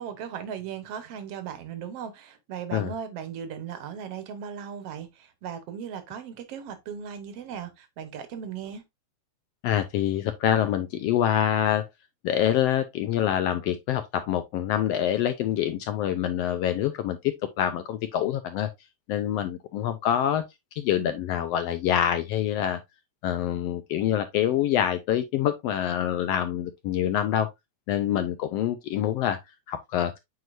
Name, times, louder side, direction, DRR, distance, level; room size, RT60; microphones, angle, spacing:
voice 1, 0.0-8.8, right 8 dB, 65° right, 1.8 m, -37 dB
voice 2, 9.6-11.9 12.2-17.2 17.6-18.7 19.1-20.4 20.8-22.8 23.2-27.5 27.9-29.4 29.7-30.1, left 10 dB, 80° left, 1.4 m, -26 dB
7.7 x 4.9 x 2.5 m
omnidirectional pair, 3.3 m